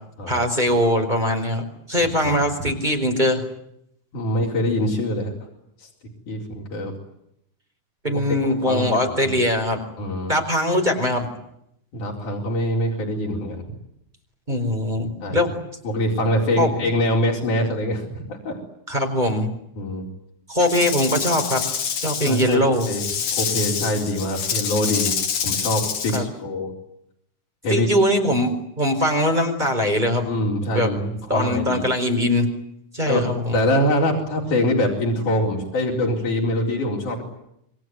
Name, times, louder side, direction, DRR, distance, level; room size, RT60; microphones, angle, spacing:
voice 1, 0.3-3.5 8.0-9.8 10.3-11.3 14.5-15.5 16.6-16.7 18.9-19.5 20.5-21.6 22.0-22.9 26.1-26.2 27.7-30.3 30.7-30.9 31.3-32.5 32.9-33.6, left 1 dB, 15° right, 3 dB, 4.5 m, -21 dB
voice 2, 4.1-5.3 5.8-5.9 6.3-7.0 8.7-9.4 10.0-10.4 11.9-13.6 15.2-15.5 15.8-18.6 19.8-20.1 22.3-26.7 27.6-27.9 30.2-31.8 33.1-33.3 33.5-37.2, left 1 dB, 90° left, -2 dB, 5.8 m, -24 dB
Rattle / Rattle (instrument), 20.7-26.2, left 7 dB, 65° left, 3.2 m, -27 dB
27.5 x 22.0 x 9.5 m, 0.77 s
omnidirectional pair, 3.4 m